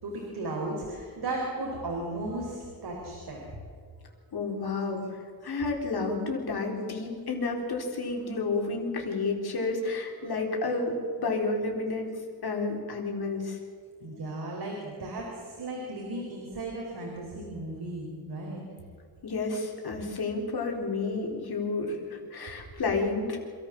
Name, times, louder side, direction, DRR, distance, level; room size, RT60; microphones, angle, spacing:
voice 1, 0.0-3.4 14.0-18.6, right 2 dB, 80° right, -1 dB, 4.4 m, -35 dB
voice 2, 4.3-12.1 12.4-13.6 19.2-23.4, left 3 dB, 80° left, 1 dB, 4.2 m, -31 dB
27.0 x 14.0 x 7.4 m, 2.2 s
wide cardioid pair, 140°, 38 cm